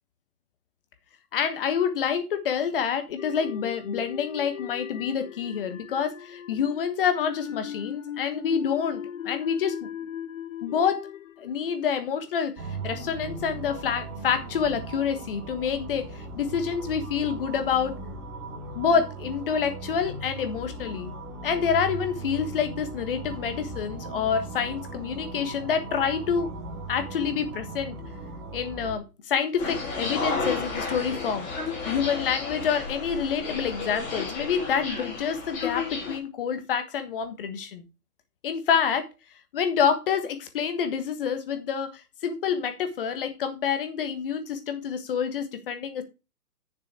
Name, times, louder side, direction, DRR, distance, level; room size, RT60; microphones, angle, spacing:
voice 1, 1.3-9.8 10.6-11.0 11.4-18.0 18.7-21.1 21.4-26.5 26.9-27.9 28.5-31.5 31.8-37.9 38.4-39.1 39.5-46.0, left 7 dB, 35° left, 9 dB, 1.5 m, -27 dB
sound 1, 3.2-12.4, left 10 dB, 55° left, 0.8 m, -39 dB
sound 2, 12.6-29.0, right 3 dB, 25° right, 2.8 m, -38 dB
sound 3, 29.6-36.2, left 4 dB, 15° left, 2.3 m, -32 dB
9.4 x 7.0 x 4.6 m, 0.28 s
hypercardioid pair, 160°, 46 cm